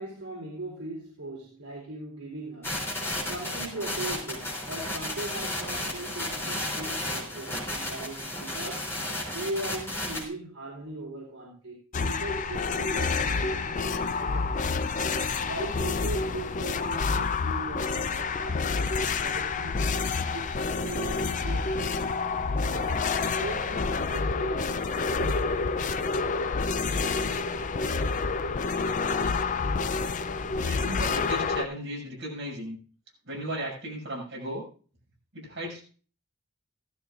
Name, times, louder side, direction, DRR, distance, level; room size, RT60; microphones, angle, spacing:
voice 1, 0.0-2.8 3.2-8.9 9.3-14.9 15.5-19.9 20.3-22.0 22.6-24.7 25.2-25.9, right 2 dB, 75° right, -4 dB, 4.0 m, -39 dB
sound 1, 2.6-10.2, left 1 dB, 10° left, 3.4 m, -33 dB
sound 2, 11.9-31.6, left 4 dB, 35° left, 0.5 m, -28 dB
voice 2, 30.4-32.8 33.3-34.6 35.3-35.8, equal, 55° right, -3 dB, 6.5 m, -35 dB
15.5 x 13.0 x 2.5 m, 0.39 s
head